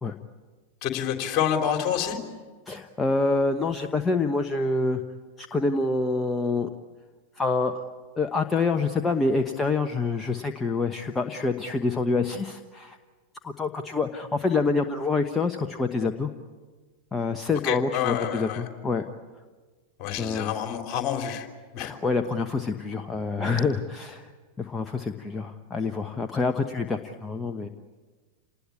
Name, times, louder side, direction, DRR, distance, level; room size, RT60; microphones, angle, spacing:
voice 1, 0.8-2.2 17.6-18.6 20.0-21.5 21.7-21.9, left 9 dB, 35° left, 4 dB, 3.6 m, -27 dB
voice 2, 2.7-5.0 5.4-6.7 7.3-7.8 8.2-13.0 13.4-16.3 17.1-19.1 20.2-20.5 21.8-24.3 24.6-27.7, left 3 dB, 15° left, 5 dB, 1.2 m, -26 dB
28.5 x 20.0 x 8.7 m, 1.4 s
figure-of-eight pair, 90°, 0 cm